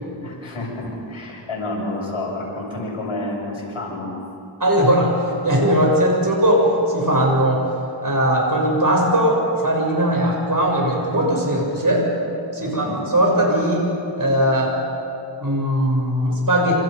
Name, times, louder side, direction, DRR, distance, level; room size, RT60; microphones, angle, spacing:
voice 1, 0.2-4.1 12.6-13.0, left 2 dB, 85° left, -2 dB, 7.4 m, -29 dB
voice 2, 4.6-5.1 5.4-7.6 8.0-12.1 12.5-13.9 14.2-14.8 15.4-16.8, equal, 40° right, -1 dB, 7.7 m, -19 dB
29.0 x 27.0 x 5.5 m, 2.7 s
wide cardioid pair, 65°, 48 cm